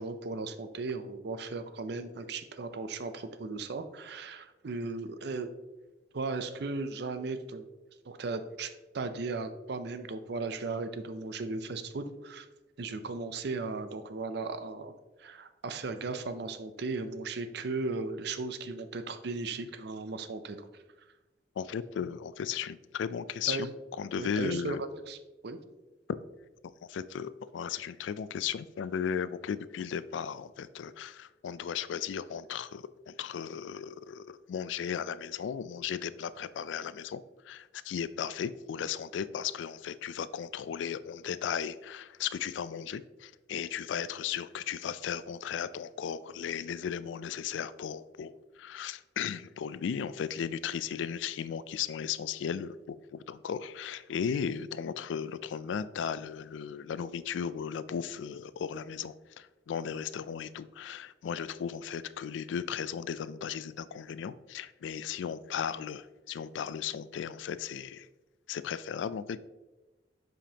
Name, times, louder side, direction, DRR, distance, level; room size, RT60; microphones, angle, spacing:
voice 1, 0.0-5.5 6.1-7.6 8.1-12.5 12.8-14.9 15.2-20.7 23.5-23.7 24.2-25.2 25.4-25.6, right 3 dB, 60° right, 10 dB, 0.5 m, -36 dB
voice 2, 21.6-23.7 24.0-24.8 26.6-68.1 68.5-69.4, left 7 dB, 85° left, 16 dB, 0.3 m, -36 dB
7.5 x 5.0 x 2.8 m, 1.1 s
head